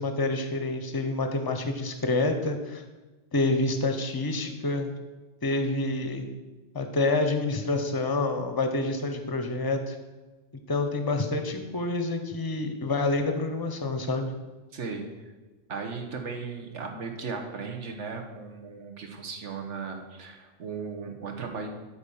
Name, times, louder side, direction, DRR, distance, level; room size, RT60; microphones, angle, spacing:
voice 1, 0.0-2.8 3.3-4.9 5.4-6.3 6.7-9.9 10.7-14.3, left 2 dB, 20° left, 6 dB, 0.7 m, -27 dB
voice 2, 14.7-15.3 15.7-21.7, right 5 dB, 70° right, 3 dB, 1.3 m, -36 dB
8.6 x 4.2 x 7.0 m, 1.2 s
omnidirectional pair, 1.3 m